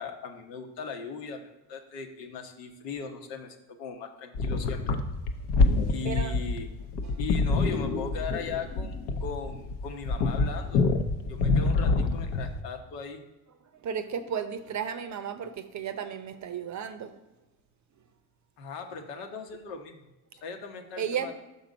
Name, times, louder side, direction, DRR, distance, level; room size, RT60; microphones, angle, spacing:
voice 1, 0.0-5.0 5.9-6.7 7.2-10.8 11.3-13.2 18.6-20.0 20.4-21.3, left 5 dB, 80° left, 5 dB, 1.1 m, -39 dB
sound 1, 4.3-12.6, left 3 dB, 60° left, 0.8 m, -26 dB
voice 2, 6.0-6.4 7.0-7.2 13.7-17.1 21.0-21.3, right 7 dB, 35° right, 10 dB, 0.6 m, -34 dB
6.1 x 4.0 x 5.1 m, 1.0 s
supercardioid pair, 90°, 48 cm